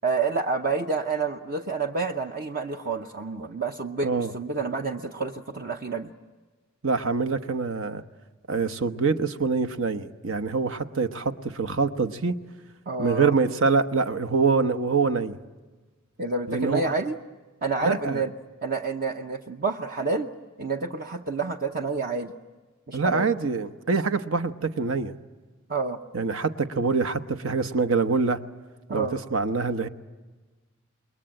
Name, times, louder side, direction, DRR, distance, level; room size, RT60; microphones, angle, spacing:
voice 1, 0.0-6.1 12.9-13.3 16.2-17.2 17.6-18.3 18.6-20.3 20.6-22.3 22.9-23.3 25.7-26.0 28.9-29.2, right 4 dB, 45° right, 4 dB, 0.8 m, -28 dB
voice 2, 6.8-8.0 8.5-12.4 13.0-15.4 16.5-16.9 17.8-18.2 22.9-25.1 26.1-28.4 28.9-29.9, right 4 dB, 70° right, 9 dB, 1.0 m, -25 dB
27.5 x 22.0 x 8.9 m, 1.3 s
head